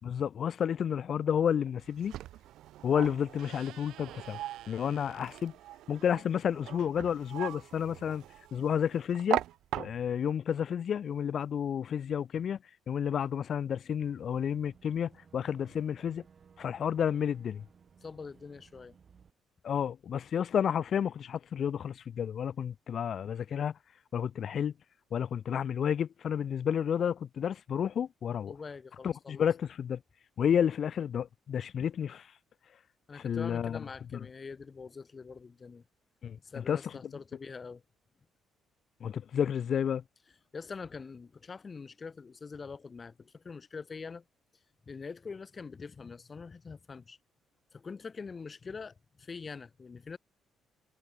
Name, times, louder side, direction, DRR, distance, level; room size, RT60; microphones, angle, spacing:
voice 1, 0.0-2.2 2.8-4.4 4.7-5.5 5.9-8.2 8.5-9.4 9.8-12.6 12.9-16.2 16.6-17.6 19.6-23.7 24.1-24.7 25.1-28.5 29.0-30.0 30.4-32.3 33.2-33.8 34.1-34.2 36.2-37.0 39.0-40.0, left 8 dB, 40° left, 1.1 m, -31 dB
sound 1, 1.8-10.3, right 14 dB, 75° right, 2.9 m, -40 dB
Boat Water vehicle / Engine, 14.0-19.3, right 6 dB, 30° right, 4.1 m, -59 dB
voice 2, 18.0-19.0 28.5-29.5 33.1-35.8 36.4-37.8 40.5-44.2 44.9-47.2 47.7-50.2, left 5 dB, 25° left, 2.2 m, -44 dB
cardioid pair, 165°, 0 cm